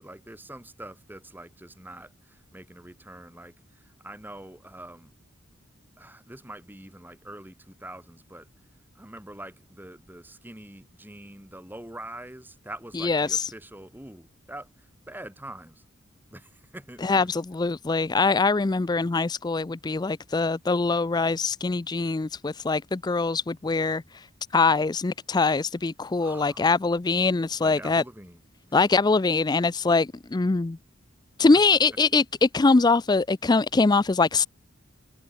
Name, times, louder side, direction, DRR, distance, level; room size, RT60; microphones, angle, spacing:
voice 1, 0.0-5.1 6.0-8.5 8.9-15.8 16.3-17.3 26.2-26.7 27.6-28.4 28.7-28.8 31.5-31.6, right 1 dB, 10° right, 2.7 m, -44 dB
voice 2, 12.9-13.5 17.0-24.3 24.5-28.0 28.7-30.8 31.4-34.5, left 3 dB, 20° left, 0.4 m, -23 dB
head